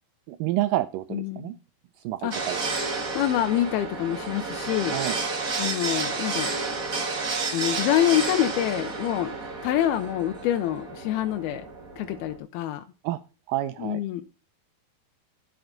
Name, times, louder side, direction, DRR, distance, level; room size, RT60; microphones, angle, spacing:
voice 1, 0.3-1.6 2.0-2.6 4.9-5.2 13.0-13.2 13.5-14.0, right 15 dB, 80° right, 2.0 m, -28 dB
voice 2, 1.1-1.6 2.2-2.3 3.2-5.0 5.6-6.5 7.5-9.4 9.6-11.6 12.0-12.8 13.8-14.2, left 12 dB, 90° left, 2.6 m, -26 dB
sound 1, 2.3-12.4, right 3 dB, 50° right, 0.9 m, -31 dB
11.5 x 8.0 x 3.8 m
omnidirectional pair, 4.4 m